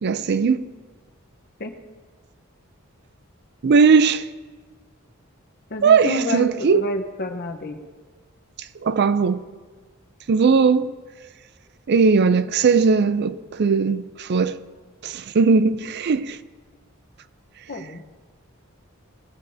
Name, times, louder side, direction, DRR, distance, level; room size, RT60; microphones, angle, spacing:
voice 1, 0.0-0.6 3.6-4.2 5.8-6.8 8.8-9.4 10.3-10.9 11.9-14.6 15.0-16.4, right 5 dB, 50° right, 0.4 m, -18 dB
voice 2, 5.7-7.8 17.7-18.0, left 2 dB, 50° left, 1.0 m, -29 dB
19.0 x 11.5 x 2.7 m
head